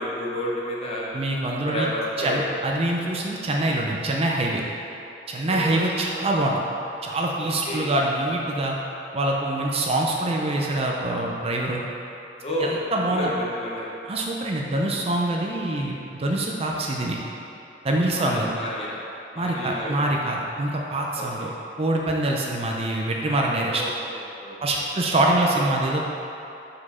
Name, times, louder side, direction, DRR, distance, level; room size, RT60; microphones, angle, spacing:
voice 1, 0.0-1.1 1.6-2.5 5.5-5.8 7.6-7.9 12.4-12.7 13.0-13.9 18.2-19.0 19.3-20.0 21.2-21.3 23.6-23.9 24.4-24.8, equal, 35° left, -5 dB, 1.1 m, -30 dB
voice 2, 1.1-1.9 2.2-4.6 5.3-6.6 7.0-8.8 9.1-11.8 12.6-13.3 14.0-17.2 17.8-18.5 19.4-21.5 21.8-23.8 24.6-26.0, right 1 dB, 35° right, -1 dB, 0.5 m, -24 dB
4.9 x 4.3 x 5.5 m, 2.9 s
head